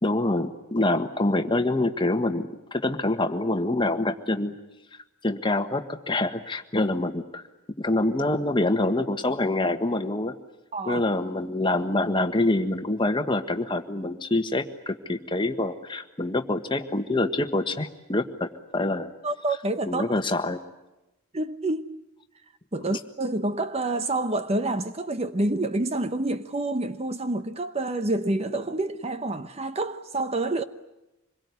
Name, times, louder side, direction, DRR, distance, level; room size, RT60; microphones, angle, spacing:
voice 1, 0.0-4.5 5.2-7.4 7.8-10.3 10.9-19.1 19.9-20.6, left 2 dB, 25° left, 1.5 m, -26 dB
voice 2, 10.7-11.0 19.2-20.1 21.3-22.0 22.7-30.6, right 2 dB, 30° right, 0.9 m, -28 dB
26.5 x 22.0 x 9.7 m
head